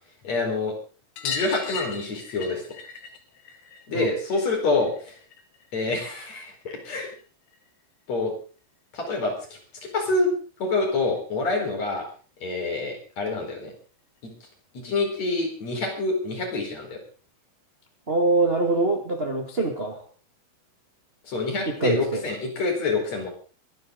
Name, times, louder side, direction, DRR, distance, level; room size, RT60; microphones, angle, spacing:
voice 1, 0.2-0.7 1.2-2.6 3.9-5.1 5.7-7.1 8.1-8.3 8.9-10.3 10.6-12.1 12.4-13.7 14.8-17.0 21.3-23.3, left 3 dB, 40° left, 1 dB, 5.7 m, -27 dB
sound 1, 1.2-6.3 6.6-7.7 9.1-9.2 9.4-9.5 9.8-9.9 11.2-11.3 11.6-11.7 12.0-12.1 13.3-13.4 14.2-14.3, left 6 dB, 80° left, 4.0 m, -38 dB
voice 2, 18.1-20.0 21.6-22.2, right 2 dB, 30° right, 3 dB, 1.0 m, -24 dB
24.0 x 12.0 x 3.9 m, 0.38 s
omnidirectional pair, 4.8 m